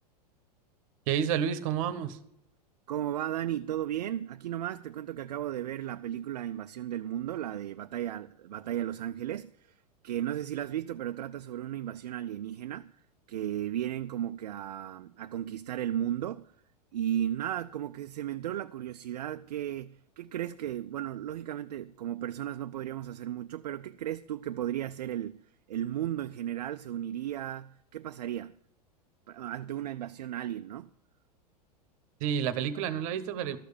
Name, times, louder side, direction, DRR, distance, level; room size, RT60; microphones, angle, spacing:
voice 1, 1.1-2.2 32.2-33.6, right 8 dB, 55° right, 1.0 m, -30 dB
voice 2, 2.9-9.7 10.0-12.9 13.3-16.5 16.9-25.4 25.7-28.5 29.3-30.9, right 11 dB, 75° right, 0.4 m, -35 dB
13.0 x 6.5 x 6.8 m
hypercardioid pair, 95°, 21 cm